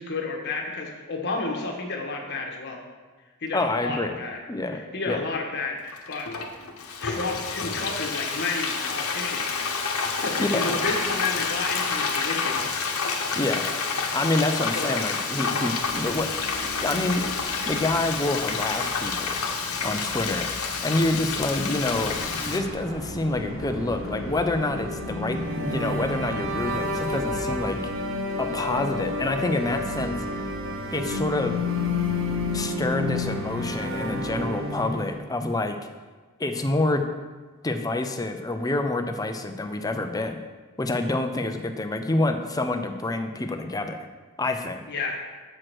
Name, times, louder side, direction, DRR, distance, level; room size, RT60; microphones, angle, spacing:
voice 1, 0.0-2.8 3.4-4.4 4.9-6.3 7.0-9.4 10.1-12.6 14.7-15.0 44.9-45.2, left 3 dB, 50° left, 1 dB, 1.3 m, -31 dB
voice 2, 3.5-4.2 4.5-5.2 10.4-10.9 13.4-13.8 14.1-16.5 16.8-17.3 17.7-19.4 19.8-20.5 20.8-22.2 22.5-27.8 28.4-30.5 30.9-31.7 32.5-35.8 36.4-37.1 37.6-40.4 40.8-44.1 44.4-44.8, left 2 dB, 15° left, 6 dB, 0.5 m, -27 dB
Frying (food), 5.9-22.6, left 5 dB, 80° left, 1.0 m, -29 dB
sound 1, 15.8-27.6, equal, 45° right, 2.4 m, -39 dB
sound 2, 22.3-35.3, left 2 dB, 60° right, 0.9 m, -30 dB
7.5 x 4.8 x 6.1 m, 1.4 s
head